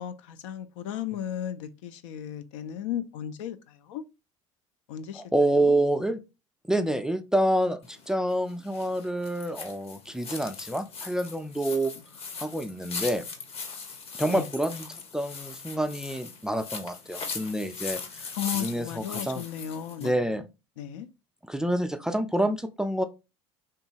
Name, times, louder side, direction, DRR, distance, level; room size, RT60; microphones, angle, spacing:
voice 1, 0.0-4.0 4.9-5.2 5.6-5.7 14.3-14.4 18.4-20.2 20.8-21.1, left 10 dB, 70° left, 0.4 m, -35 dB
voice 2, 5.1-6.2 6.7-11.9 12.4-13.2 14.1-14.9 15.1-19.4 20.0-20.5 21.4-23.0, right 1 dB, 5° right, 0.3 m, -27 dB
sound 1, 7.8-20.2, left 5 dB, 35° left, 0.7 m, -39 dB
2.7 x 2.3 x 2.7 m
hypercardioid pair, 75°, 16 cm